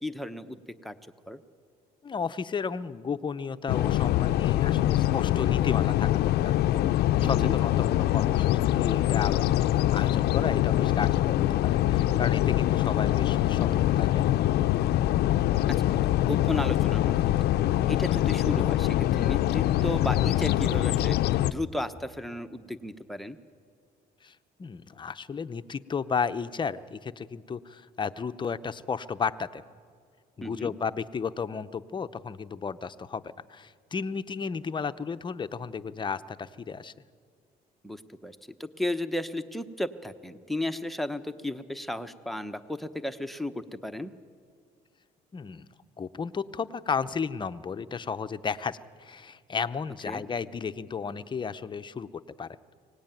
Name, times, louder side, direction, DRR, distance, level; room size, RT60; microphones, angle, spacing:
voice 1, 0.0-0.9 1.3-1.4 7.2-7.6 15.8-21.2 21.5-23.4 30.4-30.7 37.8-44.1 50.1-50.2, left 1 dB, ahead, 11 dB, 1.0 m, -34 dB
voice 2, 2.0-6.9 7.2-14.3 24.2-24.3 24.6-29.6 30.4-36.9 45.3-45.7 46.0-52.1 52.4-52.5, left 6 dB, 30° left, 11 dB, 0.8 m, -33 dB
sound 1, 3.7-21.5, left 13 dB, 70° left, 0.6 m, -24 dB
24.0 x 18.5 x 9.2 m, 2.1 s
cardioid pair, 110°, 17 cm